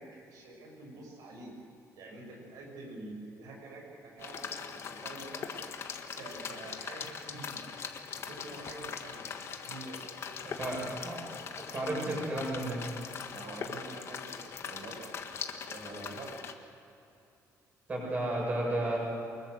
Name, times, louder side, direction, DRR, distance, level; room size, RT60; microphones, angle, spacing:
voice 1, 0.0-1.5 2.0-5.5 6.1-7.6 8.2-9.2 9.6-11.3 11.9-12.1 13.3-15.3 15.7-16.4, right 2 dB, 85° right, -1 dB, 6.7 m, -47 dB
sound 1, 4.2-16.5, left 6 dB, 50° left, 1.6 m, -41 dB
voice 2, 10.6-11.2 11.7-12.8 17.9-19.0, right 1 dB, 25° right, -3 dB, 7.3 m, -32 dB
24.5 x 21.5 x 6.7 m, 2.8 s
cardioid pair, 160°, 6 cm